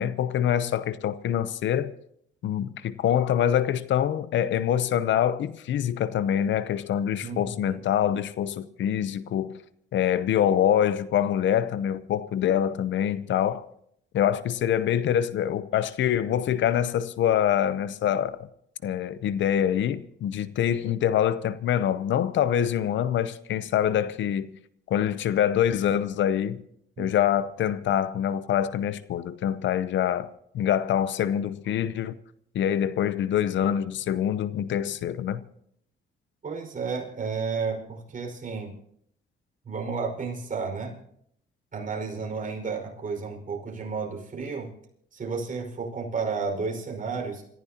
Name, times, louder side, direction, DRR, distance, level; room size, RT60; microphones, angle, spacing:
voice 1, 0.0-1.9 2.4-9.6 9.9-13.7 14.1-18.5 18.8-24.6 24.9-26.6 27.0-30.3 30.5-32.2 32.5-35.4, left 10 dB, 70° left, 0.8 m, -25 dB
voice 2, 7.2-7.8 27.0-27.1 36.4-38.7 39.7-41.0 41.7-44.7 45.1-47.4, right 5 dB, 40° right, 5.3 m, -32 dB
28.0 x 15.0 x 2.9 m
cardioid pair, 90°, 20 cm